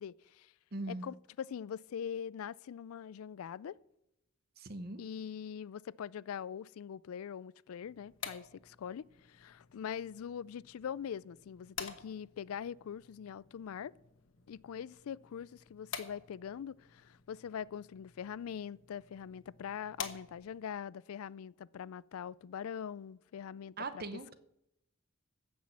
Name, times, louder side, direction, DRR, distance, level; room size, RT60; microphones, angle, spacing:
voice 1, 0.0-0.5 0.9-3.8 5.0-13.9 14.5-24.0, left 8 dB, 85° left, 0.4 m, -43 dB
voice 2, 0.7-1.1 4.6-5.0 23.8-24.3, right 2 dB, 45° right, 0.9 m, -40 dB
sound 1, 7.8-20.7, left 6 dB, 60° left, 1.3 m, -50 dB
15.5 x 6.2 x 7.3 m
head